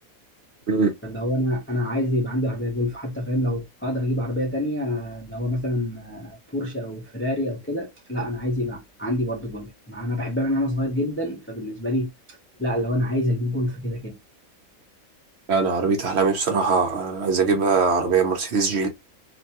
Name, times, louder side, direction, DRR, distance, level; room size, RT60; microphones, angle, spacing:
voice 1, 1.0-12.1 12.6-14.2, left 1 dB, 20° left, 0.3 m, -26 dB
voice 2, 15.5-18.9, right 4 dB, 60° right, 0.8 m, -21 dB
2.6 x 2.2 x 2.8 m
omnidirectional pair, 1.5 m